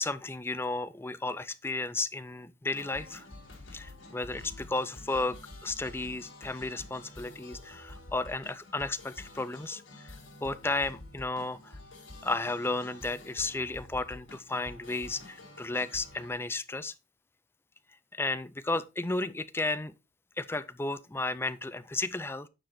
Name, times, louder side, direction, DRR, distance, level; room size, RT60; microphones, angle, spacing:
voice 1, 0.0-3.3 3.7-5.4 5.6-10.1 10.4-11.8 12.2-16.9 18.1-19.9 20.4-22.5, left 2 dB, 10° left, 0.4 m, -33 dB
sound 1, 2.7-16.3, left 2 dB, 70° left, 3.0 m, -49 dB
9.1 x 4.9 x 4.2 m
head